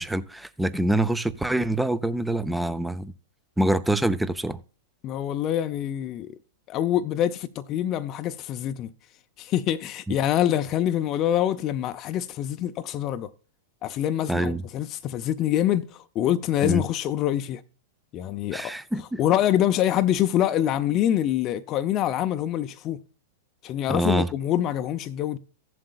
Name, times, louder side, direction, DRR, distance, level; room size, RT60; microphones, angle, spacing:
voice 1, 0.0-3.1 3.6-4.6 14.3-14.6 16.6-16.8 18.5-19.2 23.9-24.3, right 1 dB, 5° right, 0.6 m, -25 dB
voice 2, 5.0-6.4 6.7-8.9 9.4-13.3 13.8-17.6 18.1-18.7 19.2-23.0 23.6-25.4, left 11 dB, 40° left, 0.6 m, -25 dB
15.0 x 7.6 x 2.4 m
hypercardioid pair, 110°, 0 cm